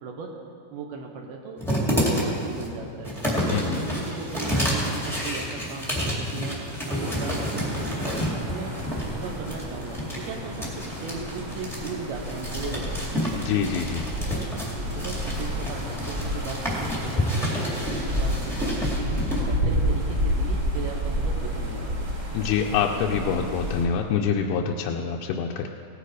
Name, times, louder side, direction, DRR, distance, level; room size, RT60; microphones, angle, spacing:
voice 1, 0.0-0.3 0.7-3.4 3.6-8.8 9.1-13.3 14.7-22.0, right 4 dB, 75° right, 0 dB, 2.6 m, -37 dB
sound 1, 1.6-19.4, equal, ahead, 0.6 m, -30 dB
voice 2, 3.5-3.8 13.3-14.1 22.3-25.7, left 7 dB, 80° left, 1 dB, 2.4 m, -26 dB
sound 2, 6.9-23.8, equal, 30° right, 1.9 m, -30 dB
17.5 x 9.1 x 4.8 m, 2.5 s
omnidirectional pair, 4.8 m